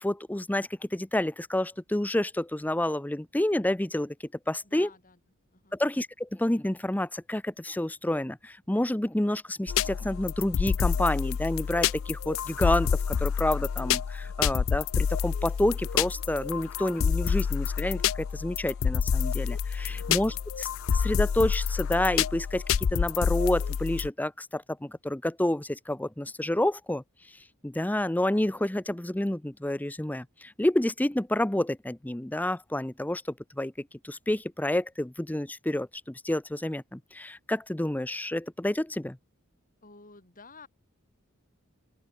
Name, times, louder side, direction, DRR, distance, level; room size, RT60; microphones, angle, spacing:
voice 1, 0.0-4.1 4.5-4.9 5.7-20.7 20.9-27.0 27.6-39.2, left 1 dB, 10° left, 0.6 m, -29 dB
voice 2, 4.6-5.2 5.5-5.8 19.6-20.4 39.8-40.7, left 4 dB, 40° left, 7.7 m, -53 dB
sound 1, 9.7-24.1, left 7 dB, 65° left, 0.4 m, -28 dB
open air
head